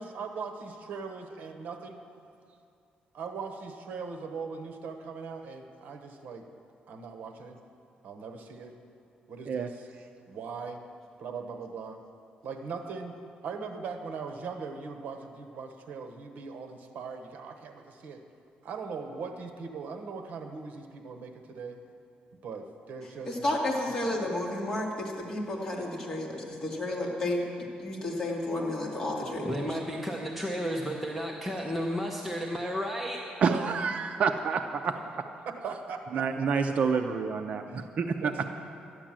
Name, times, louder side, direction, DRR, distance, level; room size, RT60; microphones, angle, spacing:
voice 1, 0.0-2.0 3.1-6.5 6.9-7.6 8.0-8.7 9.3-9.9 10.3-10.8 11.2-12.0 12.4-13.2 13.4-18.2 18.6-21.8 22.4-23.6 24.0-24.2 35.4-36.5 37.7-37.9 38.2-38.5, right 5 dB, 65° right, 5 dB, 1.1 m, -40 dB
voice 2, 23.3-27.4 27.8-29.5, left 1 dB, 20° left, -3 dB, 2.4 m, -31 dB
voice 3, 29.4-33.2, equal, ahead, -1 dB, 0.9 m, -32 dB
voice 4, 33.4-34.9 36.1-38.3, right 5 dB, 45° right, 6 dB, 0.5 m, -28 dB
12.5 x 10.0 x 7.5 m, 2.5 s
cardioid pair, 150°, 3 cm